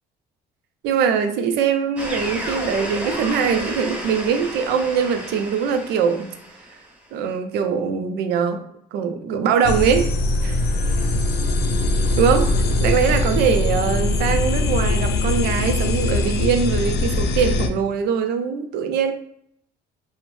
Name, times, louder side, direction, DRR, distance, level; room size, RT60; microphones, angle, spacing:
voice 1, 0.8-6.3 7.1-8.6 8.9-10.1 10.4-10.6 12.2-12.5 12.8-19.1, right 6 dB, 80° right, 7 dB, 0.4 m, -22 dB
sound 1, 2.0-6.9, equal, 5° right, 0.6 m, -32 dB
sound 2, 9.6-17.7, left 2 dB, 70° left, 0.4 m, -21 dB
2.6 x 2.0 x 3.1 m, 0.71 s
cardioid pair, 110°, 17 cm